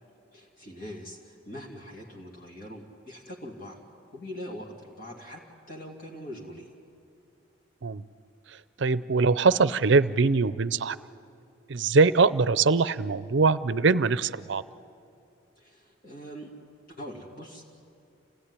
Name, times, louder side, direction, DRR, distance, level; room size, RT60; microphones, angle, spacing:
voice 1, 0.3-3.8 4.1-5.4 5.7-6.8 15.6-16.5 16.9-17.7, equal, 45° left, -1 dB, 2.7 m, -42 dB
voice 2, 8.5-11.0 11.7-14.6, right 4 dB, 65° right, 16 dB, 0.6 m, -23 dB
28.0 x 16.5 x 9.8 m, 2.6 s
head